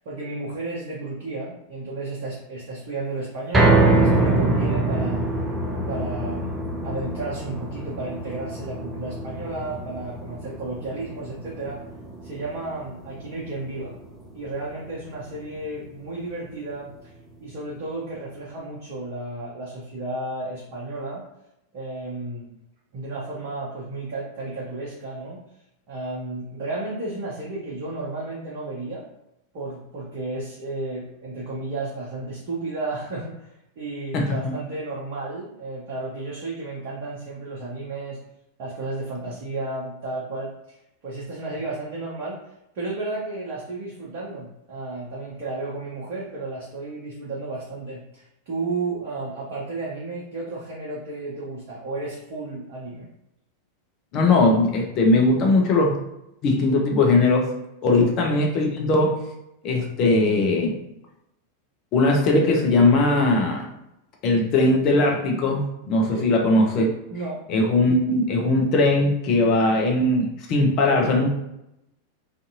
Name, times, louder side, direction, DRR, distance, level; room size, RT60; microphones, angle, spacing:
voice 1, 0.0-5.2 5.9-11.8 12.2-14.0 14.3-16.9 17.4-21.2 21.7-22.5 22.9-25.4 25.9-29.0 29.5-33.5 33.8-38.2 38.6-40.5 41.0-42.4 42.7-53.1 57.9-58.0 66.0-66.3 67.1-67.4, right 2 dB, 45° right, -6 dB, 0.7 m, -33 dB
sound 1, 3.5-15.8 16.2-16.3 16.7-16.8, right 2 dB, 15° right, 0.5 m, -25 dB
voice 2, 34.1-34.5 54.1-56.0 56.4-57.5 57.8-59.2 59.6-60.8 61.9-63.6 64.2-65.6 65.9-66.9 67.5-71.3, left 2 dB, 40° left, 1 dB, 0.6 m, -19 dB
2.5 x 2.5 x 2.6 m, 0.86 s
figure-of-eight pair, 90°, 0 cm